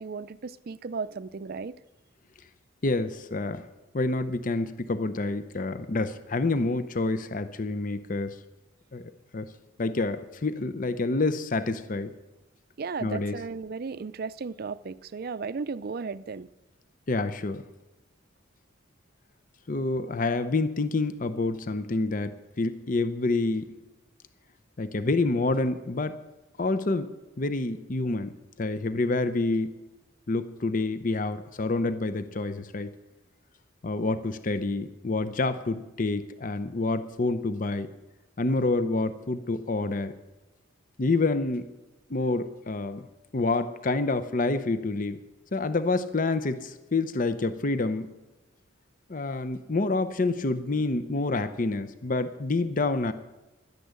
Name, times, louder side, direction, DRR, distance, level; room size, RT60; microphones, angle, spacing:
voice 1, 0.0-1.7 12.8-16.5, right 4 dB, 50° right, 17 dB, 0.4 m, -35 dB
voice 2, 2.8-3.6 3.9-8.3 8.9-9.5 9.8-12.1 13.0-13.4 17.1-17.6 19.7-22.3 22.6-23.6 24.8-26.1 26.6-27.1 27.4-29.7 30.3-32.9 33.8-37.9 38.4-40.1 41.0-41.7 42.1-43.1 43.3-45.2 45.5-48.1 49.1-53.1, left 3 dB, 40° left, 12 dB, 0.6 m, -28 dB
12.0 x 10.0 x 8.2 m, 1.0 s
head